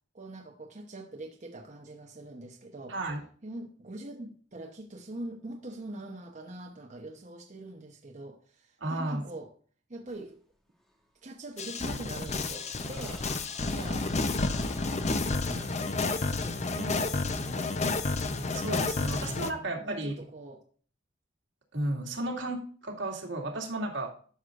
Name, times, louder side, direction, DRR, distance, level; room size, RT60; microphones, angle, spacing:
voice 1, 0.1-3.0 3.4-9.5 9.9-10.3 11.2-14.1 15.3-15.8 16.3-18.2 19.0-20.6, right 2 dB, 40° right, 2 dB, 0.9 m, -43 dB
voice 2, 2.9-3.2 8.8-9.2 18.5-20.1 21.7-24.1, right 1 dB, 80° right, 0 dB, 2.2 m, -33 dB
sound 1, 10.1-10.3 10.8-11.1 11.5-19.6, equal, ahead, 1.5 m, -54 dB
sound 2, 11.6-19.5, left 3 dB, 35° left, 0.7 m, -30 dB
12.5 x 6.3 x 2.5 m, 0.44 s
head